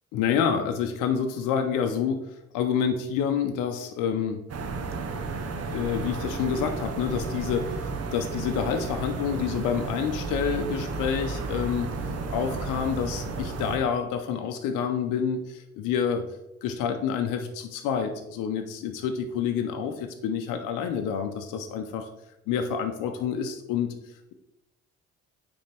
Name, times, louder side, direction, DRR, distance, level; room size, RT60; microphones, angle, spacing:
voice 1, 0.1-4.4 5.7-16.2 16.6-22.1 22.5-23.9, left 7 dB, 75° left, 6 dB, 0.6 m, -28 dB
sound 1, 4.5-13.8, right 3 dB, 50° right, 1.1 m, -33 dB
9.0 x 3.4 x 3.4 m, 0.89 s
supercardioid pair, 60°, 31 cm